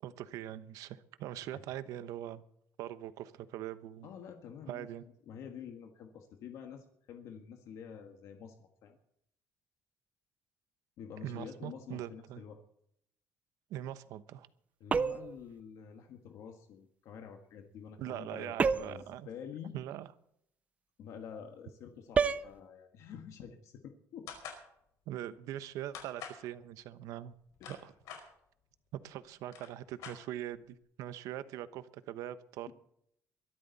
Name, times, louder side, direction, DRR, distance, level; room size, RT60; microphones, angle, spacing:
voice 1, 0.0-2.4 2.8-4.1 4.7-5.0 11.2-12.4 13.7-14.5 18.0-19.3 19.7-20.1 25.1-27.3 27.7-27.9 28.9-32.7, right 12 dB, 75° right, 13 dB, 1.0 m, -42 dB
voice 2, 4.0-4.9 5.3-9.0 11.0-12.6 14.8-19.8 21.0-24.3 27.6-27.8 32.7-32.8, left 7 dB, 65° left, 5 dB, 1.7 m, -48 dB
sound 1, 14.9-15.4 18.6-19.1 22.1-22.5, right 5 dB, 25° right, 0.5 m, -29 dB
sound 2, 24.3-24.6 25.9-26.4 27.3-28.2 29.1-29.2 29.4-30.6, left 7 dB, 90° left, 5.1 m, -46 dB
23.0 x 12.5 x 4.2 m, 0.72 s
cardioid pair, 160°, 6 cm